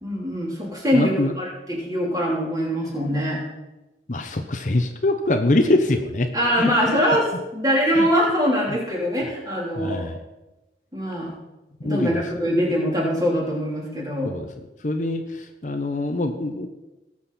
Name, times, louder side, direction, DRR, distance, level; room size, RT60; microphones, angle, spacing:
voice 1, 0.0-3.4 6.3-7.2 7.5-10.1 10.9-11.3 11.8-14.3, equal, 20° right, -4 dB, 3.5 m, -23 dB
voice 2, 0.9-1.3 4.1-6.3 6.6-7.0 7.9-8.1 9.8-10.2 11.8-12.2 14.2-14.5 14.8-16.7, left 2 dB, 45° left, 6 dB, 0.8 m, -24 dB
19.0 x 7.4 x 4.2 m, 1.0 s
head